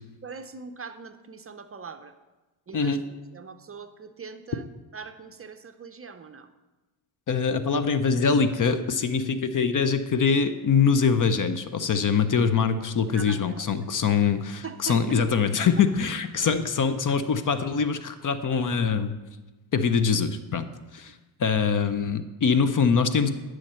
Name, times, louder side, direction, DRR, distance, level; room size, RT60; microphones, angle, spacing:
voice 1, 0.2-2.1 2.7-3.1 3.3-4.6 4.9-6.5 13.1-13.7 14.6-15.5, right 5 dB, 30° right, 8 dB, 0.6 m, -41 dB
voice 2, 2.7-3.0 7.3-19.2 19.7-20.7 20.9-21.1 21.4-23.3, left 6 dB, 40° left, 11 dB, 0.7 m, -23 dB
10.5 x 6.4 x 4.4 m, 1.2 s
supercardioid pair, 70°, 49 cm